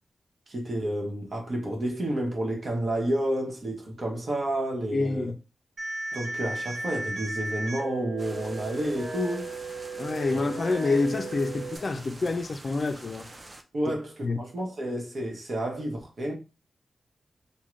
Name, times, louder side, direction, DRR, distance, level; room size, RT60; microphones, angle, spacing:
voice 1, 0.5-5.3 6.1-9.5 10.3-10.4 13.7-16.3, right 1 dB, 55° right, 1.0 m, -30 dB
voice 2, 4.9-5.4 10.0-13.3 14.2-14.4, left 3 dB, 45° left, 0.4 m, -27 dB
sound 1, 5.8-11.8, right 2 dB, 80° right, 0.7 m, -36 dB
sound 2, 8.2-13.6, right 2 dB, 30° right, 0.5 m, -46 dB
3.6 x 2.1 x 3.1 m
wide cardioid pair, 105°, 0 cm